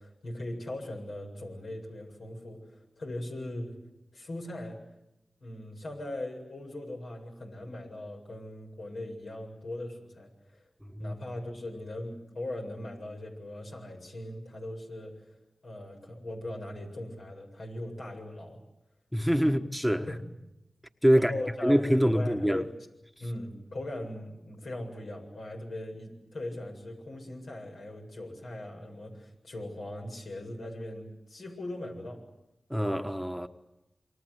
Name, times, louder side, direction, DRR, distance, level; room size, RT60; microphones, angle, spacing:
voice 1, 0.0-2.6 3.0-3.8 4.1-4.8 5.4-10.3 11.0-15.4 15.6-18.6 19.4-19.5 20.1-20.3 21.1-21.8 22.1-22.7 23.2-32.2, left 1 dB, 80° left, 7.7 m, -39 dB
voice 2, 19.1-20.1 21.0-21.3 21.6-22.6 32.7-33.5, equal, ahead, 1.4 m, -25 dB
28.5 x 24.0 x 8.2 m
cardioid pair, 50°, 0 cm